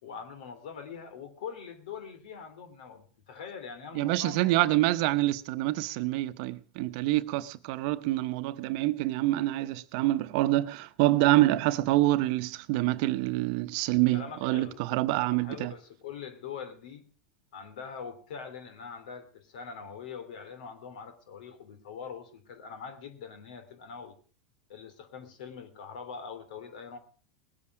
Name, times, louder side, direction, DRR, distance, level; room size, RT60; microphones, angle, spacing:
voice 1, 0.0-4.8 14.1-14.8 15.1-17.1 17.5-24.1 24.7-27.0, left 6 dB, 75° left, 3.0 m, -43 dB
voice 2, 3.9-15.7, right 17 dB, 60° right, 0.9 m, -26 dB
20.0 x 8.7 x 6.2 m
hypercardioid pair, 110°, 4 cm